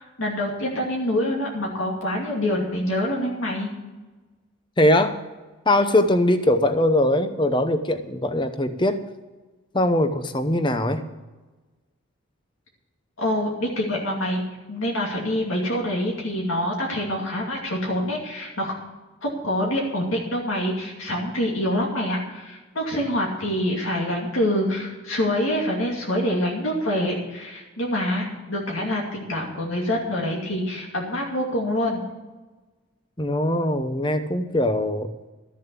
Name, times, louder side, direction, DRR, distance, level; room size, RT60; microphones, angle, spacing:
voice 1, 0.0-3.7 13.2-14.4 14.7-18.7 19.2-32.0, left 1 dB, 70° left, -2 dB, 2.6 m, -26 dB
voice 2, 4.8-5.2 5.7-9.0 9.7-11.0 33.2-35.1, left 1 dB, 20° left, 9 dB, 0.8 m, -21 dB
13.5 x 7.3 x 8.4 m, 1.2 s
head